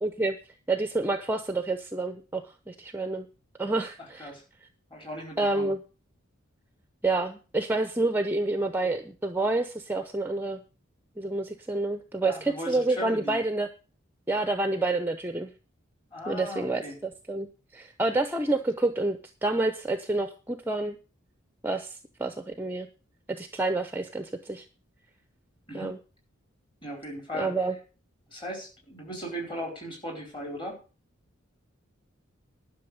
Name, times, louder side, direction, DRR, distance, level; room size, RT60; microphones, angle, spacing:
voice 1, 0.0-0.4 0.7-2.4 2.7-3.3 3.6-4.3 5.4-5.8 7.0-10.6 11.2-13.7 14.3-15.5 16.3-17.5 17.7-21.0 21.6-22.9 23.4-24.7 25.7-26.0 27.3-27.8, right 2 dB, 10° right, 8 dB, 0.7 m, -28 dB
voice 2, 4.0-4.4 4.9-5.7 12.2-13.4 16.1-17.0 25.7-26.0 26.8-27.5 28.3-30.8, equal, 25° left, 1 dB, 4.6 m, -37 dB
11.5 x 6.2 x 8.0 m, 0.35 s
head